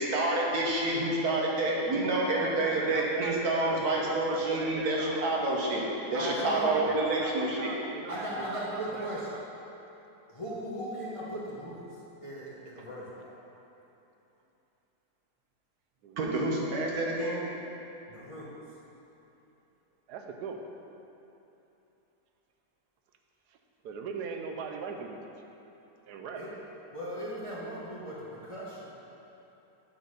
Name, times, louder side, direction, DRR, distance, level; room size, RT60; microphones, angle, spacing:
voice 1, 0.0-5.8 6.1-7.7 16.2-17.4, right 2 dB, 70° right, -3 dB, 1.6 m, -28 dB
voice 2, 2.3-5.4 6.4-9.4 12.8-12.9 16.0-16.4 20.1-20.7 23.8-25.2 26.1-26.4, right 5 dB, 85° right, 3 dB, 1.2 m, -40 dB
voice 3, 6.1-6.8 8.1-9.3 10.3-11.8 12.2-13.4 18.1-18.5 26.3-26.5 26.9-28.8, right 1 dB, 25° left, -7 dB, 0.9 m, -37 dB
7.8 x 4.0 x 6.4 m, 3.0 s
omnidirectional pair, 1.7 m